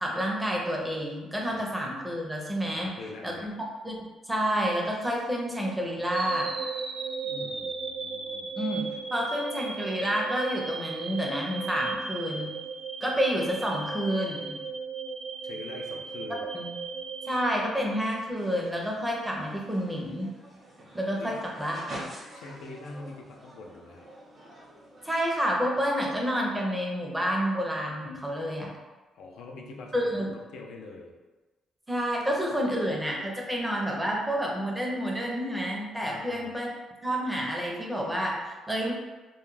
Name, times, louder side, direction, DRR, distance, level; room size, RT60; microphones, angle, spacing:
voice 1, 0.0-2.9 3.2-3.5 3.8-3.9 4.3-6.5 8.6-12.5 13.0-14.6 16.5-16.7 17.3-20.3 20.9-22.0 25.0-28.7 29.9-30.3 31.9-36.7 37.0-38.9, equal, 10° right, -1 dB, 0.5 m, -29 dB
voice 2, 2.7-3.5 7.2-8.7 15.4-16.5 20.8-21.4 22.3-24.1 29.1-31.1 36.0-36.5, left 3 dB, 85° left, 1 dB, 0.4 m, -44 dB
sound 1, 6.1-18.2, right 5 dB, 65° right, 0.4 m, -36 dB
sound 2, 17.8-17.9 18.4-25.2, right 1 dB, 45° right, 0.8 m, -46 dB
2.3 x 2.0 x 3.1 m, 1.2 s
cardioid pair, 95°, 0 cm